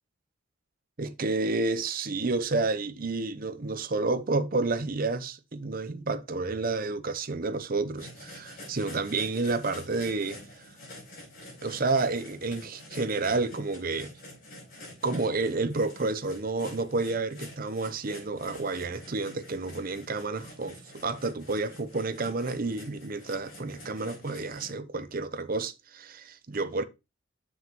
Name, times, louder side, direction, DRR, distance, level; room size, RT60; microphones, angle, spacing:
voice 1, 1.0-10.4 11.6-14.1 15.0-26.8, right 3 dB, 45° right, 0.7 m, -30 dB
sound 1, 8.0-24.7, left 1 dB, 45° left, 4.6 m, -47 dB
7.4 x 6.1 x 3.0 m
head